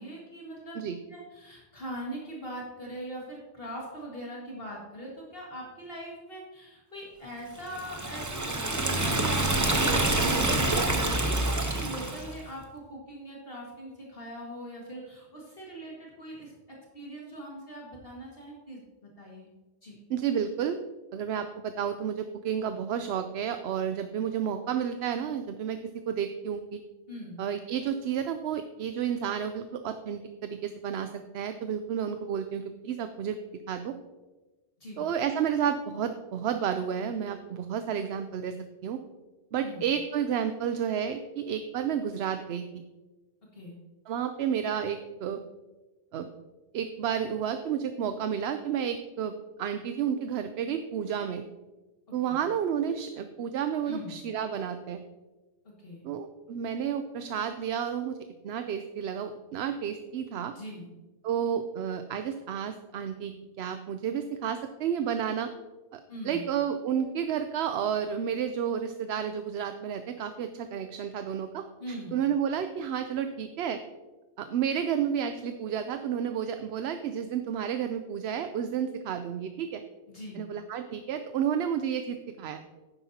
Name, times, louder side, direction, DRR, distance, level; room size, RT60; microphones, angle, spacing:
voice 1, 0.0-0.8 1.1-19.5 19.8-20.0 27.1-27.4 34.8-35.0 39.6-39.9 43.5-43.8 52.3-52.4 53.8-54.2 55.6-56.0 60.5-60.9 66.1-66.4 71.8-72.2 80.1-80.4, right 1 dB, 55° left, -3 dB, 2.1 m, -42 dB
Liquid, 7.7-12.4, right 2 dB, 20° right, 0.7 m, -26 dB
voice 2, 20.1-20.8 21.1-25.8 26.1-26.8 27.4-33.4 33.7-34.0 35.0-38.6 38.8-39.0 39.5-42.6 44.1-45.4 46.1-46.3 46.7-51.4 52.1-55.0 56.0-58.2 58.4-60.5 61.2-65.5 65.9-73.8 74.4-79.8 80.3-82.6, right 8 dB, 70° right, 8 dB, 0.8 m, -31 dB
11.0 x 9.7 x 2.8 m, 1.2 s
omnidirectional pair, 1.2 m